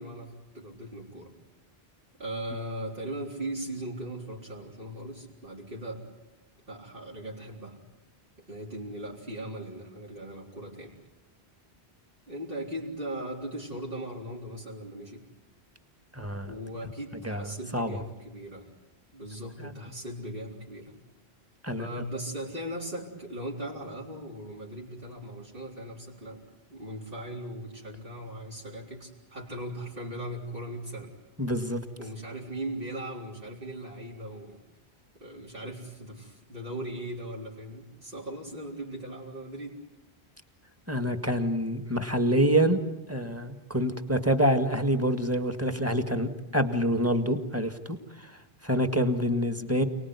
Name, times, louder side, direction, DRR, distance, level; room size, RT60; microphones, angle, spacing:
voice 1, 0.0-1.3 2.2-6.0 6.7-7.8 8.4-11.0 12.3-15.3 16.5-18.7 19.1-20.9 21.8-26.4 26.7-31.1 32.0-34.6 35.2-39.7, right 1 dB, 60° right, -3 dB, 4.2 m, -38 dB
voice 2, 16.1-16.5 17.2-17.5 17.7-18.0 19.6-19.7 21.6-21.9 31.4-31.8 40.9-42.8 43.1-48.0 48.6-49.8, equal, 15° right, 8 dB, 1.8 m, -26 dB
29.0 x 19.5 x 9.7 m, 1.1 s
omnidirectional pair, 1.1 m